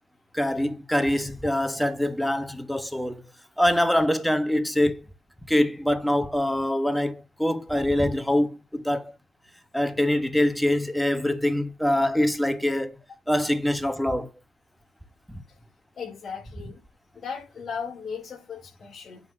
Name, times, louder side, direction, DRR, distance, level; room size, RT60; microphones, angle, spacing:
voice 1, 0.3-3.2 3.6-5.0 5.5-9.1 9.7-13.0 13.3-14.3 15.3-15.4, left 1 dB, ahead, 1.4 m, -24 dB
voice 2, 15.9-16.8 17.1-19.2, left 6 dB, 45° left, 5.2 m, -36 dB
9.7 x 4.4 x 6.1 m
cardioid pair, 90°, 0 cm